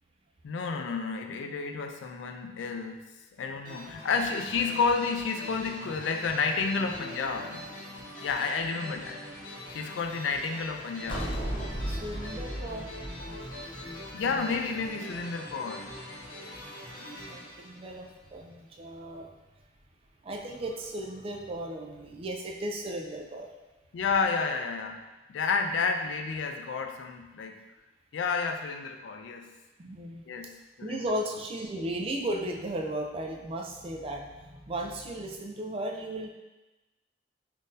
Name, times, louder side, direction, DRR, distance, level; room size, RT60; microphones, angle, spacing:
voice 1, 0.4-3.0 3.4-7.7 8.2-9.2 9.7-11.3 14.1-15.9 23.9-25.0 25.3-27.5 28.1-29.5 30.3-31.0, left 5 dB, 90° left, 4 dB, 0.4 m, -30 dB
sound 1, 3.6-18.5, left 1 dB, 50° left, 1.5 m, -43 dB
sound 2, 11.1-14.5, equal, 25° left, 0.5 m, -35 dB
voice 2, 11.8-14.4 17.2-19.3 20.2-23.5 29.8-30.2 30.8-36.3, right 1 dB, 30° right, 1 dB, 0.4 m, -36 dB
3.7 x 2.6 x 2.5 m, 1.1 s
head